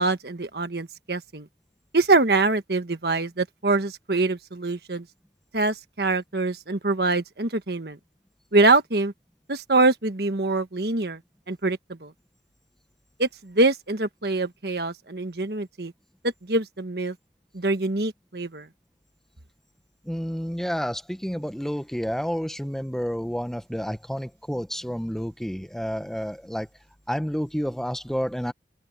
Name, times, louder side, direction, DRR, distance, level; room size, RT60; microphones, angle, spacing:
voice 1, 0.0-1.5 1.9-5.0 5.5-8.0 8.5-9.1 9.5-11.2 11.5-12.1 13.2-15.9 16.4-17.1 17.5-18.7, right 3 dB, 60° right, 1.5 m, -24 dB
voice 2, 20.1-26.7 27.1-28.5, equal, ahead, 0.8 m, -30 dB
open air
head